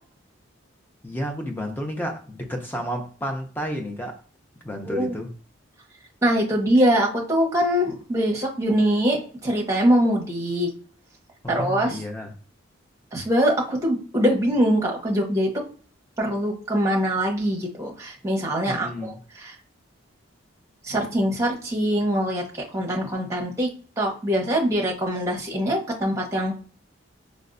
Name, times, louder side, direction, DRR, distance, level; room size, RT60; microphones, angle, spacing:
voice 1, 1.0-4.2 4.6-5.3 11.4-12.3 18.7-19.2, equal, 10° left, 0.5 m, -31 dB
voice 2, 6.2-9.2 9.4-10.7 11.5-12.0 13.1-15.5 16.2-19.1 20.8-22.4 22.7-23.7 24.0-26.5, equal, 15° right, 0.9 m, -23 dB
4.3 x 2.0 x 2.5 m
head